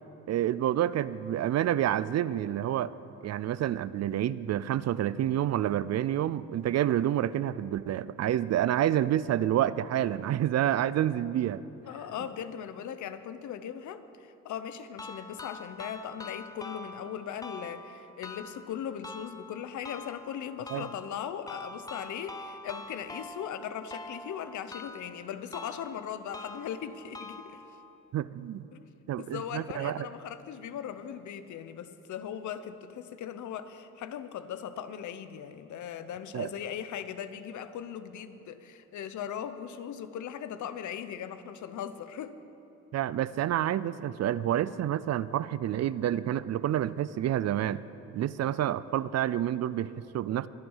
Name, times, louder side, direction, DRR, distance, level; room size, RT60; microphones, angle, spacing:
voice 1, 0.3-2.9 3.2-11.6 20.7-20.8 28.1-28.6 29.1-30.1 36.3-36.5 42.9-47.8 48.1-50.5, right 11 dB, 60° right, 17 dB, 0.5 m, -28 dB
voice 2, 11.9-27.6 28.7-28.9 29.2-42.4, left 9 dB, 75° left, 11 dB, 0.9 m, -39 dB
sound 1, 15.0-28.0, left 2 dB, 10° left, 1.0 m, -45 dB
23.0 x 8.8 x 5.6 m, 3.0 s
cardioid pair, 90°, 30 cm